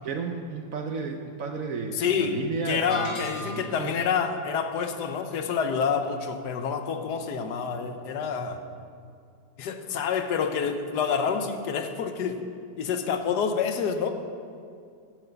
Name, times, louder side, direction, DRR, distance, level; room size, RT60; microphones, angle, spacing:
voice 1, 0.0-4.0, right 4 dB, 65° right, 4 dB, 0.9 m, -33 dB
voice 2, 1.9-2.4 2.7-8.6 9.6-12.4 12.8-14.1, left 6 dB, 70° left, 7 dB, 1.3 m, -28 dB
sound 1, 2.9-3.9, left 1 dB, 45° left, 1.7 m, -36 dB
10.5 x 6.3 x 7.9 m, 2.3 s
omnidirectional pair, 1.9 m